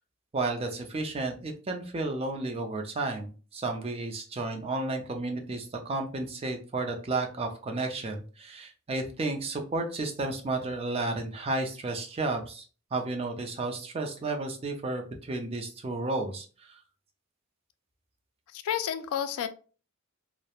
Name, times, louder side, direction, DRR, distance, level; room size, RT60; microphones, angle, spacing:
voice 1, 0.3-12.7 12.9-16.8, right 2 dB, 30° right, 3 dB, 0.4 m, -32 dB
voice 2, 18.5-19.5, left 9 dB, 80° left, 11 dB, 0.3 m, -30 dB
2.3 x 2.0 x 2.8 m, 0.37 s
head